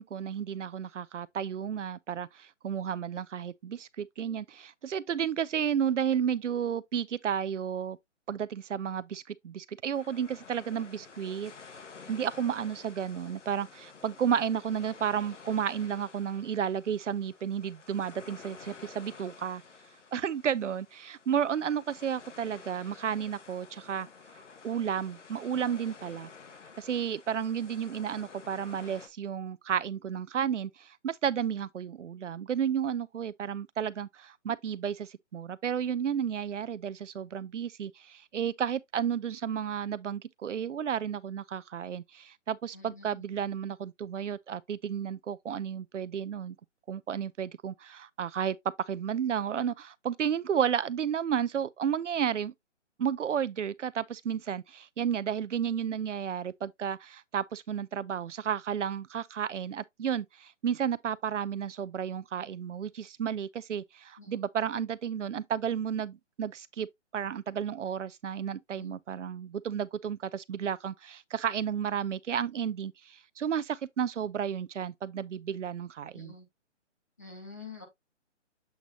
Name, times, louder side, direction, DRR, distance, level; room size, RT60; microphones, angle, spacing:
voice 1, 0.0-8.0 8.3-11.5 12.1-19.6 20.1-24.1 24.6-26.3 26.8-46.6 46.9-48.6 48.9-52.5 53.0-66.9 67.1-76.3, right 8 dB, 75° right, 0.7 m, -32 dB
sound 1, 9.9-29.1, left 5 dB, 75° left, 1.7 m, -51 dB
voice 2, 42.7-43.3 64.2-64.4 68.7-68.9 76.1-76.4 77.2-77.8, left 4 dB, 15° left, 0.9 m, -47 dB
8.0 x 3.0 x 4.0 m
hypercardioid pair, 180°, 36 cm